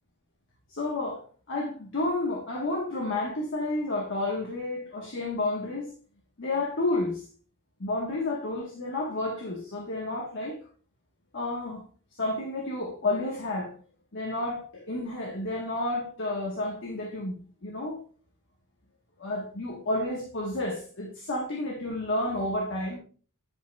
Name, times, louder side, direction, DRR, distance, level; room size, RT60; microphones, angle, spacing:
voice 1, 0.7-5.9 6.4-7.3 7.8-10.6 11.3-11.8 12.2-13.8 14.1-18.0 19.2-23.0, left 2 dB, 55° left, 1.2 m, -31 dB
9.8 x 5.2 x 2.3 m
head